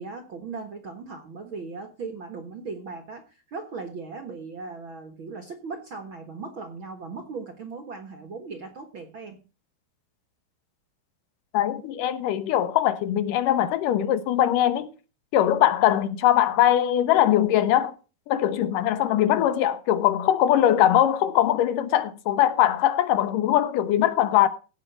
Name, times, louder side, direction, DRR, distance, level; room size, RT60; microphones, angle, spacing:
voice 1, 0.0-9.4, right 4 dB, 55° right, 1.4 m, -38 dB
voice 2, 11.5-14.9 15.3-17.9 18.3-24.5, left 11 dB, 70° left, 2.5 m, -21 dB
16.5 x 5.7 x 6.8 m
omnidirectional pair, 4.2 m